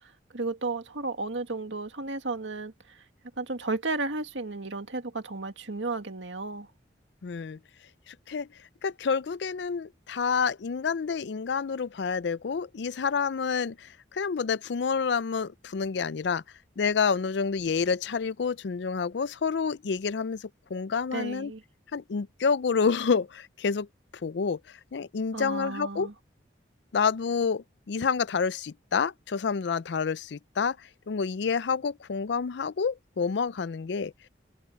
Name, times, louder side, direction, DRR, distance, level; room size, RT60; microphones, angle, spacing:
voice 1, 0.3-3.0 3.4-6.7 21.1-21.6 25.3-26.1, right 3 dB, 85° right, 2.1 m, -33 dB
voice 2, 7.2-7.6 8.1-8.5 8.8-16.4 16.8-21.5 21.9-23.9 24.2-24.6 24.9-26.1 26.9-30.8 31.1-34.1, left 5 dB, 70° left, 0.4 m, -28 dB
head